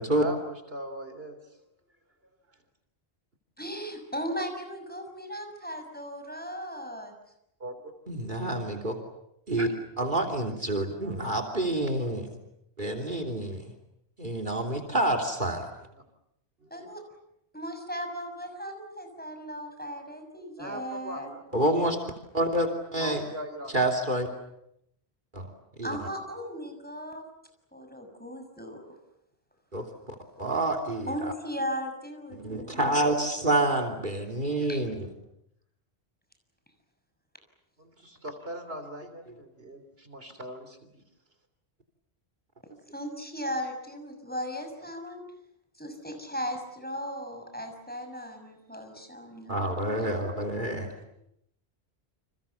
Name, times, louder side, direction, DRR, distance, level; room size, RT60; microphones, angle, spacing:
voice 1, 0.1-1.4 7.6-7.9 9.6-9.7 15.9-16.0 16.6-16.9 20.6-21.4 23.0-23.7 37.8-40.8 51.0-51.2, equal, 65° right, 8 dB, 3.5 m, -40 dB
voice 2, 3.6-7.1 16.7-17.0 17.5-21.3 25.8-27.2 27.7-28.8 31.1-32.9 34.7-34.8 42.9-45.2 45.7-49.8 50.1-50.2, equal, 10° left, 4 dB, 6.4 m, -37 dB
voice 3, 8.1-8.9 9.5-9.7 10.0-12.3 12.8-13.7 14.2-15.7 21.5-22.0 22.3-23.3 23.7-24.3 25.3-25.5 25.8-25.9 29.7-31.3 32.3-35.1 49.5-50.9, right 1 dB, 50° right, 7 dB, 3.4 m, -28 dB
30.0 x 27.5 x 7.1 m, 0.78 s
omnidirectional pair, 1.1 m